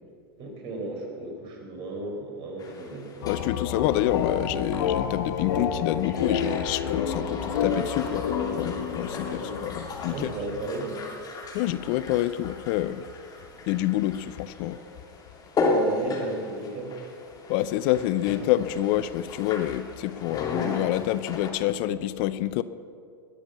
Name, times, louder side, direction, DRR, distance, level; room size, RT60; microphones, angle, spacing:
voice 1, 0.4-3.3 3.8-3.9 7.2-7.7 9.2-9.6 10.1-11.0 15.6-17.0, right 2 dB, 45° right, 1 dB, 4.5 m, -35 dB
sound 1, 2.6-21.5, left 2 dB, 30° left, 2.6 m, -35 dB
sound 2, 3.2-10.7, left 7 dB, 75° left, 1.3 m, -30 dB
voice 2, 3.3-8.3 8.5-10.3 11.5-13.0 13.7-14.8 17.5-22.6, left 14 dB, 55° left, 15 dB, 0.6 m, -27 dB
20.0 x 7.2 x 7.0 m, 2.4 s
hypercardioid pair, 100°, 13 cm